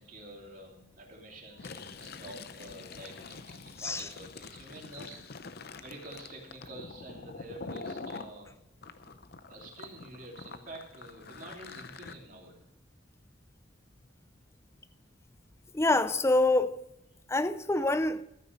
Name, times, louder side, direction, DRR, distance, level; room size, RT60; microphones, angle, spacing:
voice 1, 0.0-5.4 5.8-8.6 8.9-9.2 9.5-12.7, right 1 dB, 40° right, 3.0 m, -48 dB
Fill (with liquid), 1.5-8.3 8.8-12.1, left 4 dB, 50° left, 0.7 m, -45 dB
voice 2, 15.7-16.7 17.3-18.2, left 2 dB, 15° left, 0.5 m, -26 dB
13.5 x 9.1 x 5.3 m
head